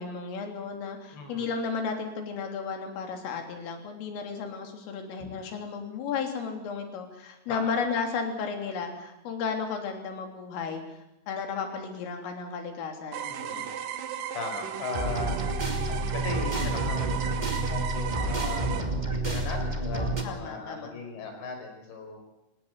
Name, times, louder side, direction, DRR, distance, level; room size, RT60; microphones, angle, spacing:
voice 1, 0.0-10.8 11.3-13.9 20.2-20.9, left 5 dB, 75° left, 4 dB, 5.8 m, -34 dB
voice 2, 1.1-1.5 5.2-5.3 7.5-7.7 13.3-13.6 14.3-15.5 15.8-22.2, left 4 dB, 60° left, 4 dB, 7.3 m, -38 dB
sound 1, 13.1-18.8, right 9 dB, 75° right, 2.0 m, -35 dB
sound 2, 14.9-20.2, right 2 dB, 20° right, 1.1 m, -29 dB
27.5 x 18.0 x 8.2 m, 0.90 s
omnidirectional pair, 5.9 m